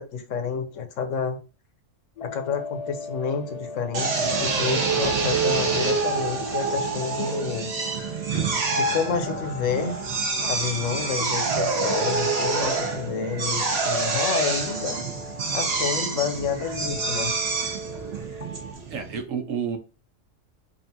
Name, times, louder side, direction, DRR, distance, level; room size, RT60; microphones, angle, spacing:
voice 1, 0.0-1.4 2.2-7.7 8.8-9.9 10.4-15.0 15.5-17.3, left 6 dB, 75° left, 1.1 m, -29 dB
sound 1, 2.2-18.7, left 3 dB, 50° left, 0.4 m, -38 dB
Drill, 3.9-19.2, right 4 dB, 55° right, 1.1 m, -27 dB
voice 2, 18.9-19.8, right 7 dB, 85° right, 1.1 m, -29 dB
5.2 x 2.5 x 2.7 m
omnidirectional pair, 1.3 m